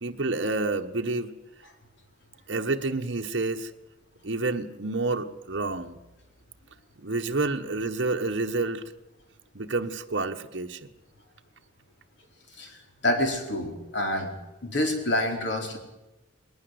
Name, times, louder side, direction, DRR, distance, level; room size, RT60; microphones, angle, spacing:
voice 1, 0.0-1.3 2.5-3.7 4.2-6.0 7.0-8.8 9.5-10.8, right 3 dB, 65° right, 3 dB, 1.2 m, -29 dB
voice 2, 13.0-14.3 14.6-15.8, left 1 dB, 65° left, 4 dB, 4.4 m, -27 dB
20.5 x 19.5 x 7.9 m, 0.99 s
head